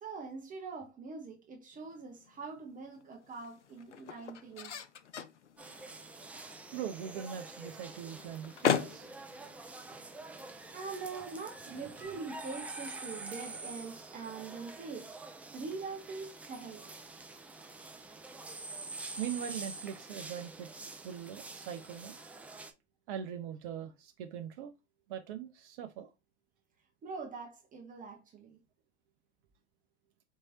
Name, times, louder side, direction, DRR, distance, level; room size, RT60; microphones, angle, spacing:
voice 1, 0.0-4.8 10.7-15.1 15.5-16.9 27.0-28.6, right 4 dB, 25° right, 0.9 m, -43 dB
sound 1, 1.7-12.1, left 8 dB, 85° left, 0.5 m, -40 dB
sound 2, 5.6-22.7, right 3 dB, 5° right, 0.4 m, -47 dB
voice 2, 6.7-9.1 19.2-20.7 21.0-22.1 23.1-24.7 25.1-26.1, right 9 dB, 50° right, 0.6 m, -41 dB
4.5 x 3.1 x 2.7 m
hypercardioid pair, 95°, 34 cm